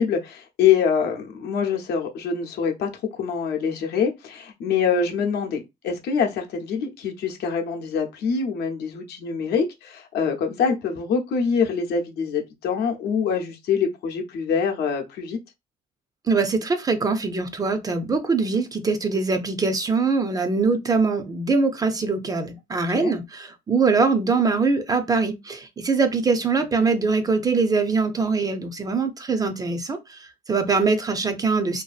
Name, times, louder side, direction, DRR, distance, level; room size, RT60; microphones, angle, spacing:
voice 1, 0.0-15.4 22.9-23.1 26.8-26.9, left 6 dB, 75° left, 0.7 m, -25 dB
voice 2, 16.3-31.8, right 4 dB, 20° right, 0.4 m, -23 dB
2.6 x 2.4 x 2.4 m
cardioid pair, 110°, 17 cm